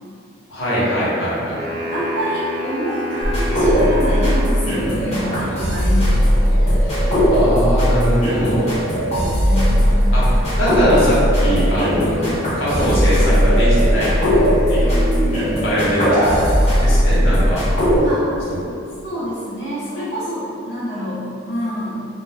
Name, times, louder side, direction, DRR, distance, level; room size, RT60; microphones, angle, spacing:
voice 1, 0.5-1.6 6.8-8.7 10.1-10.2 10.6-14.1 14.7-15.3 15.6-16.5 16.8-17.6, equal, 90° left, -9 dB, 0.9 m, -21 dB
sound 1, 1.5-4.9, equal, 55° right, 0.4 m, -28 dB
voice 2, 1.9-6.3 9.1-9.9 12.2-12.5 18.0-18.5 19.0-22.0, equal, 65° left, -12 dB, 0.7 m, -27 dB
sound 2, 3.2-18.0, equal, 35° left, 0.8 m, -17 dB
sound 3, 4.7-5.7 6.1-12.7 13.0-15.0 15.2-16.6, right 1 dB, 20° right, 0.7 m, -29 dB
2.2 x 2.2 x 3.4 m, 2.5 s
head